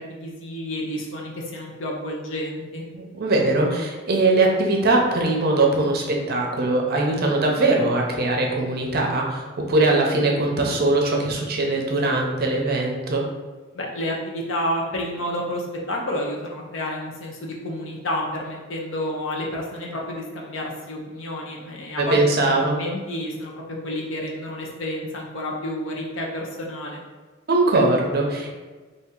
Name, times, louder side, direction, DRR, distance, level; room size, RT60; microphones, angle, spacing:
voice 1, 0.1-2.8 13.7-22.2 22.5-27.0, left 1 dB, 65° left, -1 dB, 0.7 m, -30 dB
voice 2, 2.9-13.2 22.0-22.8 27.5-28.5, right 2 dB, 50° right, 0 dB, 0.6 m, -21 dB
2.7 x 2.6 x 3.6 m, 1.3 s
head